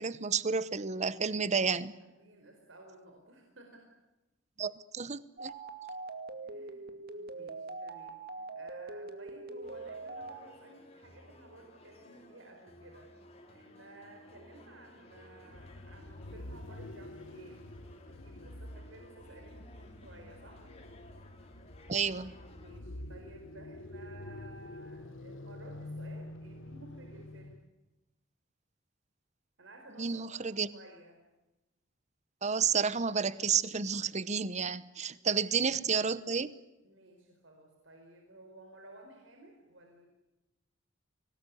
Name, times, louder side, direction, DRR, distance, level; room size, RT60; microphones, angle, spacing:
voice 1, 0.0-1.9 4.6-5.5 21.9-22.3 30.0-30.7 32.4-36.5, right 6 dB, 35° right, 17 dB, 0.9 m, -31 dB
voice 2, 2.0-3.8 6.4-13.1 13.5-17.7 18.1-20.7 22.6-27.6 29.6-30.4 30.7-31.2 35.0-35.4 36.8-40.1, right 2 dB, 80° right, 2 dB, 4.6 m, -55 dB
sound 1, 5.4-10.4, right 3 dB, 50° right, 2.3 m, -43 dB
sound 2, 9.6-22.8, left 1 dB, 30° left, 3.7 m, -56 dB
sound 3, 15.5-27.7, left 1 dB, 90° left, 1.4 m, -47 dB
25.0 x 19.0 x 9.7 m, 1.0 s
head